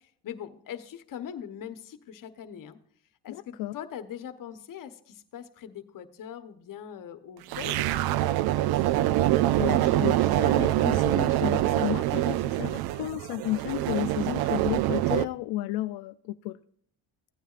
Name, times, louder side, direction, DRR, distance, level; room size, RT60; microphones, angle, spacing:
voice 1, 0.0-2.8 3.2-9.1, left 9 dB, 55° left, 1.1 m, -42 dB
voice 2, 3.3-3.8 9.6-16.6, left 15 dB, 75° left, 0.5 m, -33 dB
sound 1, 7.5-15.3, right 15 dB, 70° right, 0.5 m, -25 dB
16.0 x 9.1 x 2.5 m
cardioid pair, 90°, 39 cm